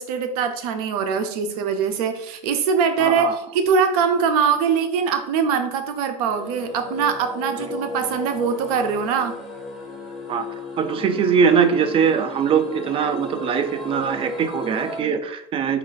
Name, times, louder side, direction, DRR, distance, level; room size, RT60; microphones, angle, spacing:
voice 1, 0.0-9.4, right 6 dB, 70° right, 8 dB, 0.6 m, -22 dB
voice 2, 3.0-3.3 10.3-10.4 10.8-15.8, right 6 dB, 30° right, 9 dB, 0.5 m, -21 dB
sound 1, 6.2-15.0, left 2 dB, ahead, 1.0 m, -35 dB
4.4 x 2.4 x 3.8 m, 0.76 s
supercardioid pair, 120°, 20 cm